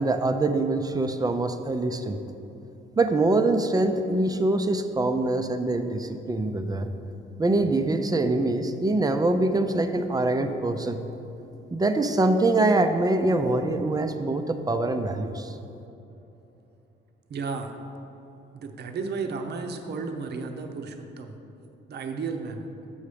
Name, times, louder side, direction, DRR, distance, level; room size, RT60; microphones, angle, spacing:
voice 1, 0.0-2.2 3.0-6.9 7.4-11.0 11.7-15.6, right 2 dB, 20° right, 7 dB, 0.5 m, -24 dB
voice 2, 17.3-17.7 18.5-21.4 21.9-22.6, right 4 dB, 55° right, 5 dB, 0.7 m, -33 dB
7.1 x 5.6 x 4.9 m, 2.9 s
cardioid pair, 90°, 20 cm